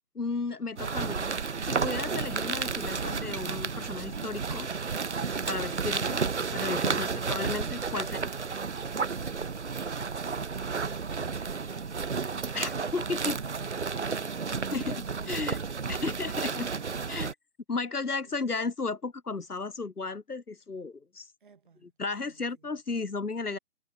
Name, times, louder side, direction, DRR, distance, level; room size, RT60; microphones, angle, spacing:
voice 1, 0.1-1.3 1.7-4.7 5.4-6.2 6.5-8.3 12.5-13.4 14.7-15.6 15.9-16.7 17.1-17.3 17.7-21.3 22.0-23.6, left 4 dB, 85° left, 1.3 m, -34 dB
sound 1, 0.8-17.3, right 5 dB, 50° right, 0.8 m, -32 dB
Shatter, 2.8-3.3, right 2 dB, 75° right, 5.7 m, -55 dB
voice 2, 21.4-21.9 22.2-22.7 23.5-23.6, right 5 dB, 35° right, 2.1 m, -56 dB
figure-of-eight pair, 155°, 44 cm